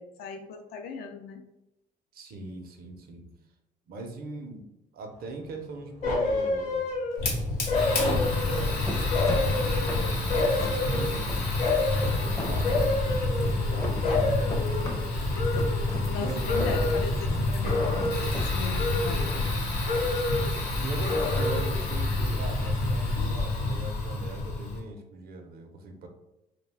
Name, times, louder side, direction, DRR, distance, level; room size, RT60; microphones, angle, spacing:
voice 1, 0.0-1.4 16.0-19.3, left 5 dB, 65° left, 6 dB, 0.4 m, -39 dB
voice 2, 2.1-3.4 3.9-4.7 4.9-6.9 7.7-11.4 12.2-15.3 15.9-16.7 20.8-26.1, right 2 dB, 60° right, 4 dB, 0.6 m, -41 dB
sound 1, 5.1-18.5, left 1 dB, 15° left, 0.5 m, -38 dB
sound 2, 6.0-7.3 7.7-8.8 9.1-11.2 11.6-12.2 12.6-13.8 14.0-16.2 16.5-17.1 17.6-18.4 18.7-19.6 19.8-20.6 21.0-21.8 22.2-22.3, left 2 dB, 50° left, 0.9 m, -29 dB
Fire, 7.2-24.8, left 2 dB, 85° left, 0.8 m, -28 dB
2.4 x 2.2 x 3.3 m, 0.91 s
cardioid pair, 110°, 17 cm